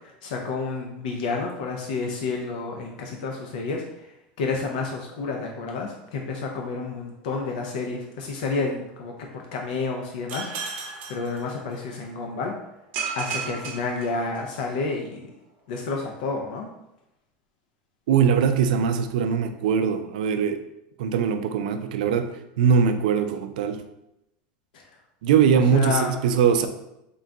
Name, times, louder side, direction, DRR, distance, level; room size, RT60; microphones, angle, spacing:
voice 1, 0.0-10.8 11.1-12.5 13.2-15.3 15.7-16.7 24.7-24.9 25.7-26.1, left 4 dB, 70° left, 0 dB, 0.5 m, -30 dB
sound 1, 10.3-12.0 12.9-14.7, right 6 dB, 40° right, 0.7 m, -34 dB
voice 2, 18.1-20.6 21.0-22.3 22.6-23.8 25.2-26.7, right 7 dB, 85° right, 9 dB, 0.4 m, -21 dB
3.7 x 2.2 x 3.7 m, 0.87 s
supercardioid pair, 170°, 4 cm